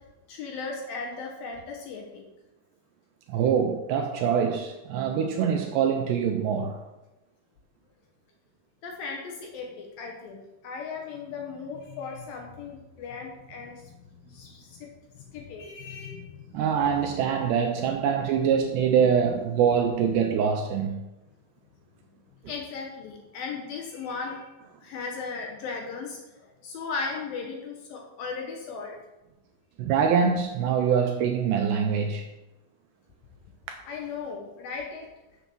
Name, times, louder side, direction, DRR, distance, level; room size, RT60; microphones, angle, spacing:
voice 1, 0.3-2.2 8.8-14.9 15.2-16.5 18.4-18.5 18.8-19.2 22.5-24.5 24.8-29.0 33.8-35.1, left 4 dB, 75° left, 1 dB, 2.1 m, -37 dB
voice 2, 3.3-6.8 16.5-21.1 29.8-32.2 33.7-33.8, right 7 dB, 80° right, 4 dB, 2.5 m, -24 dB
8.1 x 7.0 x 6.2 m, 1.0 s
omnidirectional pair, 5.7 m